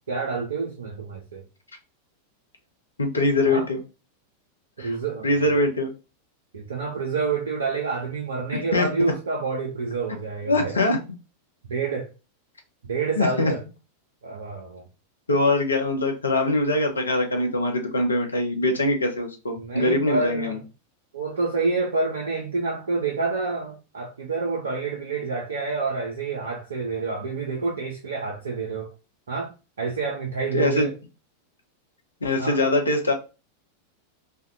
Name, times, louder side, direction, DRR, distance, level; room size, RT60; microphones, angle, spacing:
voice 1, 0.1-1.4 3.5-3.6 4.8-5.3 6.5-10.8 11.7-12.1 12.9-13.6 14.2-14.8 19.6-20.6 21.1-28.9 29.3-29.5 29.8-30.9 32.4-32.6, right 4 dB, 70° right, 0.5 m, -28 dB
voice 2, 3.0-3.8 4.8-5.0 5.2-5.9 8.7-9.1 10.5-11.0 13.2-13.5 15.3-20.6 30.5-30.9 32.2-33.1, left 2 dB, 75° left, 0.6 m, -23 dB
2.5 x 2.2 x 2.4 m
figure-of-eight pair, 90°, 0 cm